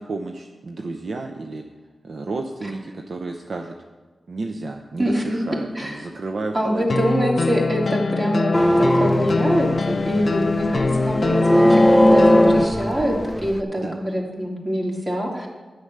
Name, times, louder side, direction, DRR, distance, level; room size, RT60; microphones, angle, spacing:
voice 1, 0.0-1.6 2.0-3.8 4.3-7.2 13.8-14.0, right 3 dB, 65° right, 4 dB, 0.7 m, -32 dB
voice 2, 5.0-5.4 5.8-6.0 6.5-11.7 12.0-15.5, equal, 35° right, -1 dB, 2.6 m, -24 dB
sound 1, 6.9-12.7, left 4 dB, 60° left, 0.4 m, -24 dB
sound 2, 8.5-13.6, equal, 5° left, 0.6 m, -18 dB
9.7 x 6.4 x 6.6 m, 1.3 s
cardioid pair, 50°, 0 cm